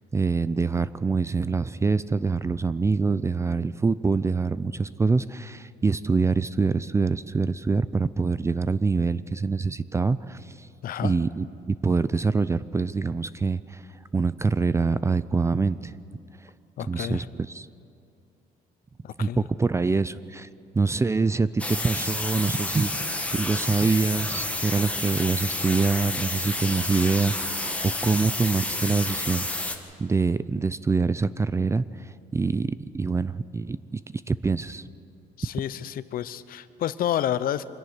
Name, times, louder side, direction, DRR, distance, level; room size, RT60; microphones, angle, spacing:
voice 1, 0.1-10.7 11.0-13.8 14.1-16.0 16.9-17.7 19.2-20.5 20.7-29.5 30.0-34.0 34.3-34.8, right 4 dB, 15° right, 16 dB, 0.4 m, -25 dB
voice 2, 10.8-11.1 16.8-17.3 19.0-19.5 35.4-37.7, left 11 dB, 60° left, 15 dB, 0.7 m, -30 dB
sound 1, 21.6-29.8, left 2 dB, 10° left, 1.6 m, -30 dB
25.0 x 11.0 x 9.6 m, 2.5 s
cardioid pair, 110°, 17 cm